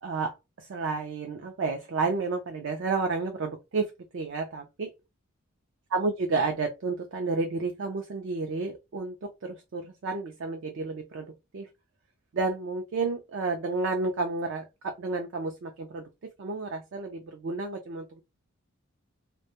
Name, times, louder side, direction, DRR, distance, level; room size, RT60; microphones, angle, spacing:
voice 1, 0.0-4.9 5.9-11.7 12.3-16.1 16.4-18.2, right 3 dB, 55° right, 0.4 m, -31 dB
2.1 x 2.1 x 2.8 m
head